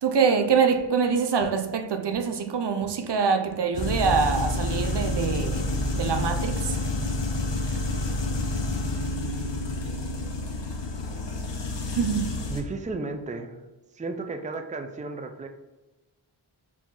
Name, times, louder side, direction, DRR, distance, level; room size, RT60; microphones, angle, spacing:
voice 1, 0.0-6.9 11.9-12.4, right 6 dB, 60° right, 0.6 m, -25 dB
sound 1, 0.7-0.8 1.4-1.5 2.1-2.2 2.8-2.9 3.4-3.5 4.1-4.2 4.8-4.9 5.4-5.6, equal, 40° left, 1.4 m, -49 dB
sound 2, 3.7-12.6, left 2 dB, 65° left, 0.8 m, -29 dB
voice 2, 12.5-13.6 13.9-15.5, right 3 dB, 15° right, 0.5 m, -33 dB
4.9 x 2.8 x 3.8 m
cardioid pair, 45°, 47 cm